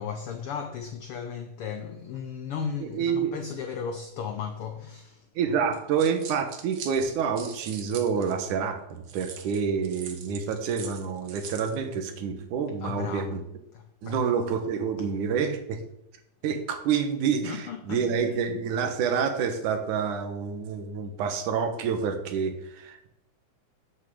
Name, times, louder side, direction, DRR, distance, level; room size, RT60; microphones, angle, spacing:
voice 1, 0.0-5.3 12.8-13.3 13.7-14.2 17.4-18.0, left 7 dB, 80° left, 1.2 m, -35 dB
voice 2, 2.8-3.4 5.4-13.4 14.0-15.8 16.4-23.1, right 6 dB, 90° right, 2.7 m, -28 dB
sound 1, 5.7-8.5 9.1-11.8, right 6 dB, 55° right, 1.6 m, -42 dB
8.6 x 6.2 x 7.8 m
omnidirectional pair, 3.4 m